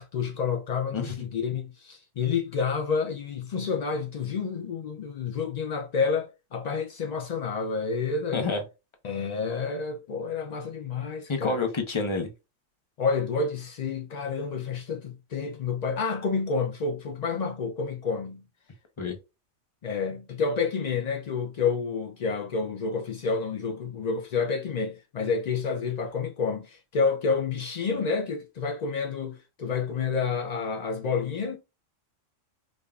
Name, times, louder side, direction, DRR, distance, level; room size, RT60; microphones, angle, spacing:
voice 1, 0.0-8.5 9.0-11.6 13.0-18.4 19.8-31.6, left 5 dB, 75° left, 0.3 m, -29 dB
voice 2, 11.3-12.3 19.0-19.2, left 3 dB, 30° left, 0.6 m, -28 dB
5.2 x 2.4 x 2.3 m
omnidirectional pair, 1.3 m